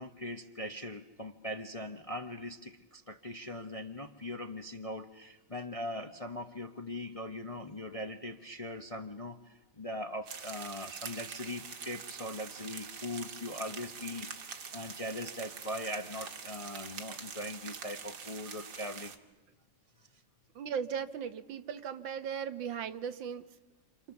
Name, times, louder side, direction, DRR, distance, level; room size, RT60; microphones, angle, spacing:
voice 1, 0.0-19.2, left 1 dB, 30° left, 5 dB, 0.6 m, -41 dB
sound 1, 10.3-19.2, right 6 dB, 65° right, 1.9 m, -45 dB
voice 2, 20.6-23.5, right 7 dB, 85° right, 10 dB, 1.8 m, -37 dB
29.0 x 26.5 x 7.1 m, 1.1 s
omnidirectional pair, 2.0 m